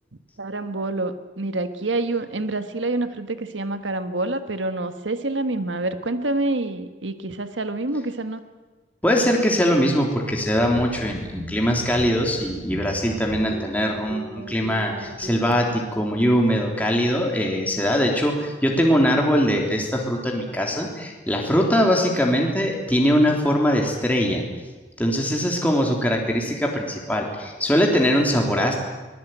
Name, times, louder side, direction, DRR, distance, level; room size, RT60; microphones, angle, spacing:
voice 1, 0.4-8.4, right 2 dB, 85° right, 9 dB, 1.5 m, -27 dB
voice 2, 9.0-24.4 25.0-28.7, equal, 10° left, 0 dB, 3.4 m, -21 dB
sound 1, 10.5-15.6, equal, 50° right, 3.2 m, -38 dB
24.0 x 20.0 x 9.2 m, 1.3 s
head